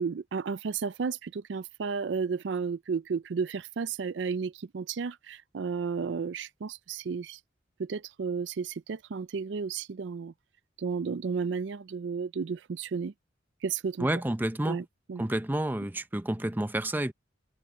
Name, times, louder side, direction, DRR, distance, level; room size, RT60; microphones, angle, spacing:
voice 1, 0.0-7.4 7.8-10.3 10.8-13.1 13.6-14.1 14.7-15.3, right 5 dB, 65° right, 0.4 m, -33 dB
voice 2, 14.0-14.8 15.2-17.1, right 1 dB, 10° right, 0.6 m, -29 dB
head